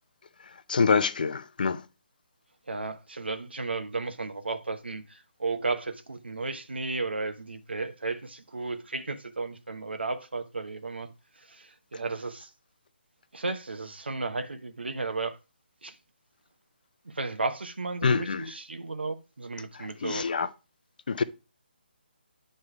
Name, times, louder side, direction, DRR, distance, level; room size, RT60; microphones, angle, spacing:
voice 1, 0.7-1.8 18.0-18.5 19.7-20.5 21.1-21.2, left 5 dB, 55° left, 0.6 m, -26 dB
voice 2, 2.7-11.1 11.4-12.5 13.3-15.4 15.8-15.9 17.1-20.3, right 3 dB, 80° right, 0.9 m, -34 dB
8.9 x 3.3 x 4.6 m
figure-of-eight pair, 145°, 6 cm